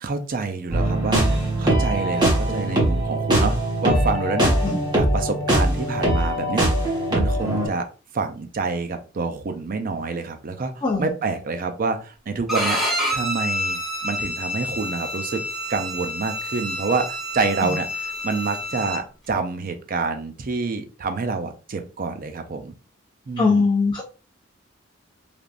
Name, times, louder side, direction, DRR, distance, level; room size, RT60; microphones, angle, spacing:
voice 1, 0.0-4.5 4.9-6.6 7.1-7.8 8.1-12.8 13.1-15.4 15.7-17.1 17.3-22.7 23.3-23.7, right 4 dB, 45° right, 7 dB, 0.5 m, -27 dB
sound 1, 0.7-7.7, right 1 dB, 25° right, 1.2 m, -21 dB
Bowed string instrument, 12.5-19.0, equal, ahead, 0.9 m, -28 dB
voice 2, 23.4-24.0, left 3 dB, 25° left, -2 dB, 0.5 m, -20 dB
3.3 x 2.5 x 2.4 m, 0.34 s
head